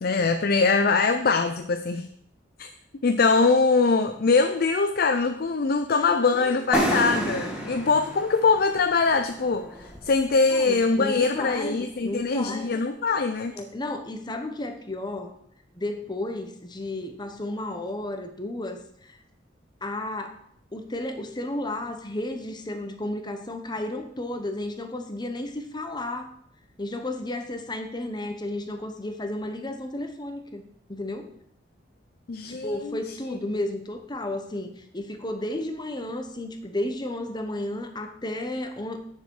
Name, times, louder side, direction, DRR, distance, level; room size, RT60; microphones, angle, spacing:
voice 1, 0.0-2.1 2.6-2.7 3.0-13.6 32.3-33.0, left 4 dB, 55° left, 8 dB, 0.5 m, -23 dB
voice 2, 5.9-6.5 10.5-12.8 13.5-15.4 15.7-19.2 19.8-20.4 20.7-26.3 26.8-30.6 30.9-31.3 32.5-39.0, left 1 dB, 25° left, 6 dB, 1.1 m, -33 dB
sound 1, 6.7-10.4, right 1 dB, 5° right, 2.2 m, -30 dB
9.5 x 6.8 x 4.8 m, 0.67 s
head